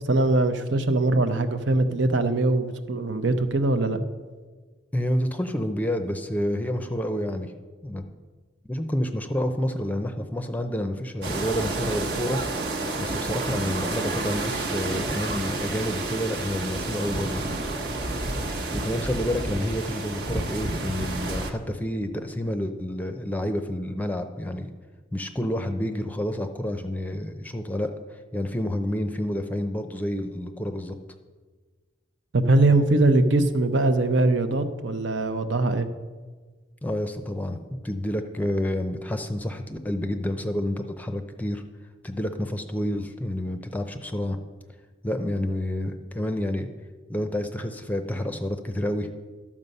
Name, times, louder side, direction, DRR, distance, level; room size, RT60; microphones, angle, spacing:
voice 1, 0.1-4.0 32.3-35.9, right 2 dB, 75° right, 8 dB, 0.8 m, -22 dB
voice 2, 4.9-7.5 7.8-8.0 8.7-12.4 13.0-17.4 18.7-24.7 25.1-27.9 28.3-31.0 36.8-41.6 42.0-44.4 45.0-46.7 47.1-49.1, left 1 dB, 10° left, 7 dB, 0.6 m, -29 dB
sound 1, 11.2-21.5, right 2 dB, 55° right, 1.1 m, -30 dB
12.5 x 7.4 x 5.4 m, 1.4 s
head